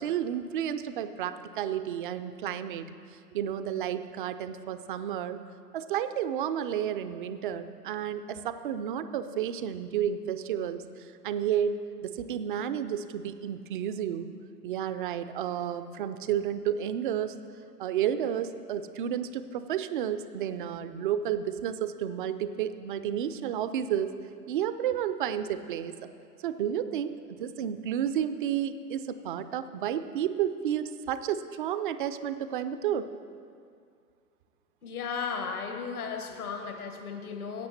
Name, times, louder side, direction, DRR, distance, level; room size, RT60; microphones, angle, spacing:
voice 1, 0.0-2.9 3.3-5.4 5.7-11.8 12.0-14.3 14.6-17.4 17.8-24.1 24.5-25.9 26.4-33.1 36.6-36.7, right 9 dB, 35° right, 12 dB, 0.5 m, -31 dB
voice 2, 34.8-37.7, left 5 dB, 65° left, 5 dB, 1.5 m, -35 dB
15.5 x 8.6 x 4.2 m, 2.2 s
figure-of-eight pair, 105°, 47 cm